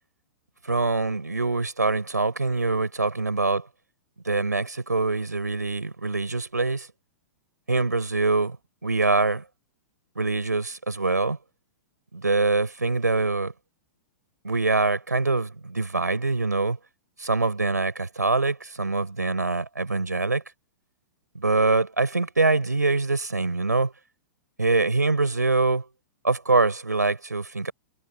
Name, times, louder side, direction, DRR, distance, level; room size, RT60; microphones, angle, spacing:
voice 1, 0.6-3.7 4.2-6.9 7.7-8.6 8.8-9.4 10.1-11.4 12.1-13.5 14.4-16.8 17.2-20.4 21.3-23.9 24.6-25.8 26.2-27.7, right 3 dB, 85° right, 4.8 m, -24 dB
figure-of-eight pair, 105°, 9 cm